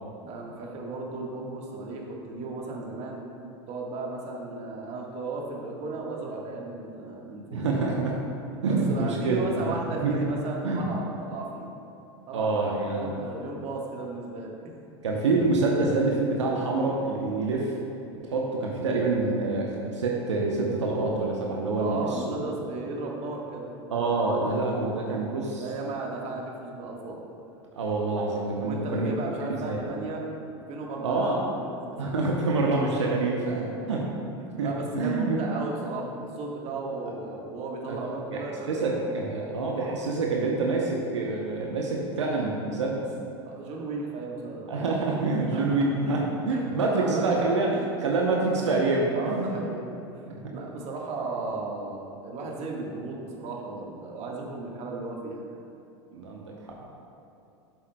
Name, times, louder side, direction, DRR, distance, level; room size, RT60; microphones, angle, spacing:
voice 1, 0.2-3.2 3.7-7.6 8.7-11.8 12.3-12.5 12.9-14.6 21.8-23.7 25.6-27.2 28.6-30.3 30.7-32.0 33.5-33.6 34.4-39.0 43.4-45.1 45.5-45.7 46.0-46.2 46.5-46.6 46.9-47.2 49.1-49.9 50.5-55.6, right 3 dB, 45° right, -1 dB, 1.5 m, -35 dB
voice 2, 7.5-8.2 8.6-10.2 10.6-10.9 12.3-13.1 15.0-17.8 18.2-22.3 23.9-25.7 27.7-29.1 29.6-29.8 31.0-31.4 32.0-34.0 34.6-34.7 34.9-35.4 37.9-38.4 38.7-43.1 44.7-49.5 50.3-50.5 56.1-56.9, right 3 dB, 85° right, -2 dB, 0.8 m, -26 dB
12.0 x 7.2 x 2.2 m, 2.7 s
hypercardioid pair, 85°, 15 cm